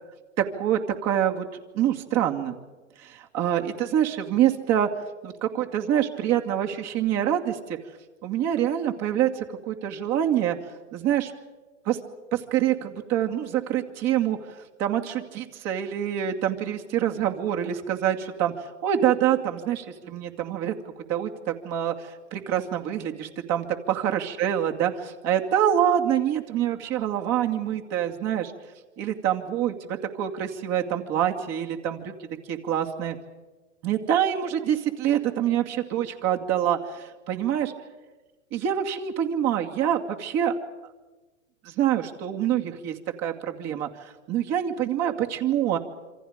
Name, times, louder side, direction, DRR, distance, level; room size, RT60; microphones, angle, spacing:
voice 1, 0.4-1.5 1.7-2.5 3.0-4.9 5.2-7.8 8.2-10.6 10.9-11.3 11.9-12.0 12.3-14.4 14.8-18.5 18.8-20.7 21.1-28.5 29.0-32.1 32.5-33.2 33.8-37.7 38.5-40.6 41.6-43.9 44.3-45.8, right 10 dB, 40° right, 3 dB, 2.6 m, -26 dB
27.5 x 25.5 x 5.2 m, 1.2 s
hypercardioid pair, 115°, 40 cm